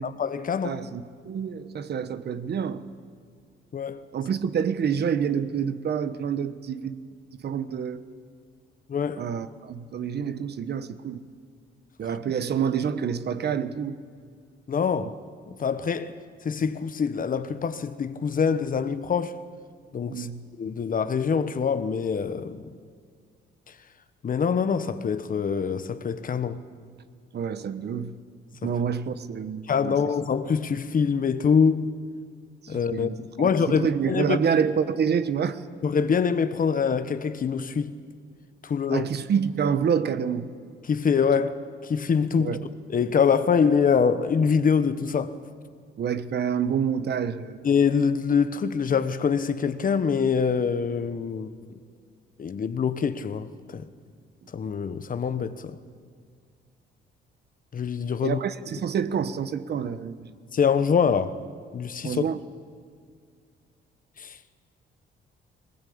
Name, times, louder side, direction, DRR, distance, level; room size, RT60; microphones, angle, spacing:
voice 1, 0.0-0.8 3.7-4.0 8.9-9.2 14.7-15.1 15.5-16.1 16.4-19.4 19.9-20.3 20.6-22.7 24.2-26.6 28.6-28.7 29.7-31.9 32.7-34.4 35.8-38.0 38.6-39.1 40.8-42.6 42.9-45.3 47.6-51.8 52.4-53.9 54.5-55.8 57.7-58.4 60.5-61.4 61.7-62.2 64.2-64.3, left 6 dB, 45° left, 1.1 m, -24 dB
voice 2, 0.6-2.8 4.1-7.0 7.4-8.0 9.2-11.2 12.0-14.0 15.0-15.1 20.1-20.4 27.3-28.1 28.6-30.0 32.6-33.2 33.7-35.6 38.9-40.5 42.4-42.6 46.0-47.6 58.2-60.3 62.0-62.4, right 7 dB, 55° right, 1.2 m, -27 dB
20.0 x 20.0 x 8.7 m
cardioid pair, 90°, 20 cm